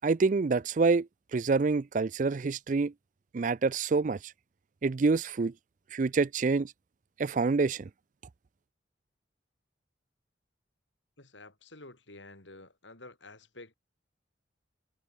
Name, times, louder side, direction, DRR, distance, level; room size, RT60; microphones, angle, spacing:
voice 1, 0.0-2.9 3.3-4.3 4.8-5.5 5.9-6.7 7.2-7.9, right 4 dB, 40° right, 0.4 m, -27 dB
voice 2, 11.2-13.7, left 2 dB, 80° left, 5.9 m, -50 dB
head